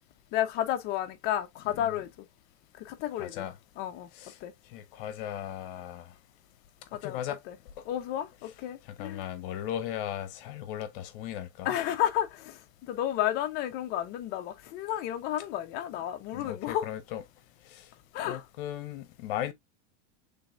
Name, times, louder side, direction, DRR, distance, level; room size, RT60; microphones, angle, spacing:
voice 1, 0.3-2.3 2.8-3.5 3.8-4.1 4.4-4.5 6.9-7.6 7.9-9.3 11.6-16.9 18.1-18.4, left 11 dB, 30° left, 0.5 m, -32 dB
voice 2, 3.2-3.5 4.1-4.4 4.7-6.1 7.0-7.4 7.8-7.9 9.0-11.7 16.3-17.2 17.7-17.9 18.2-19.5, left 11 dB, 50° left, 0.9 m, -37 dB
6.1 x 3.4 x 2.4 m
supercardioid pair, 170°, 34 cm